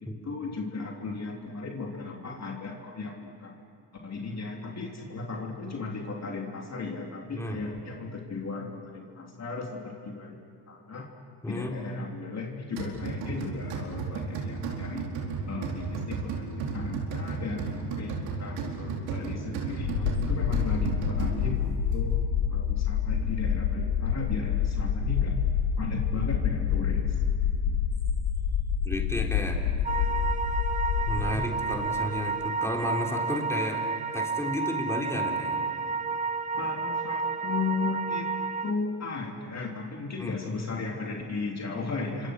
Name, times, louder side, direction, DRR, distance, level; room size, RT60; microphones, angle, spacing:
voice 1, 0.0-3.5 4.0-10.4 10.7-11.1 11.5-15.1 15.5-25.4 25.8-27.1 27.7-27.8 31.1-31.5 36.5-38.3 38.6-42.3, left 4 dB, 35° left, 0 dB, 3.2 m, -36 dB
voice 2, 7.3-7.6 11.4-11.8 19.9-20.3 28.8-29.6 31.1-33.9 34.1-35.6 40.2-40.4, left 1 dB, 5° left, 0 dB, 3.9 m, -32 dB
sound 1, 12.8-21.7, right 4 dB, 75° right, 4.6 m, -34 dB
sound 2, 19.8-31.2, left 8 dB, 90° left, 2.6 m, -27 dB
sound 3, 29.8-38.7, right 4 dB, 15° right, 1.0 m, -31 dB
29.0 x 25.5 x 6.5 m, 2.2 s
supercardioid pair, 80°, 47 cm